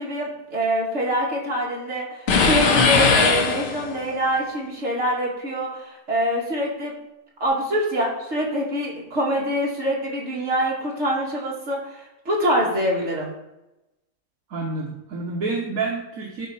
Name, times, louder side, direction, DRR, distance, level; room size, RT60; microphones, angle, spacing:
voice 1, 0.0-6.9 7.4-13.3, equal, 40° right, -4 dB, 2.6 m, -25 dB
sound 1, 2.3-4.1, left 4 dB, 90° left, 1.7 m, -19 dB
voice 2, 14.5-16.5, right 3 dB, 60° right, -2 dB, 1.6 m, -28 dB
11.0 x 4.2 x 5.6 m, 0.96 s
omnidirectional pair, 1.8 m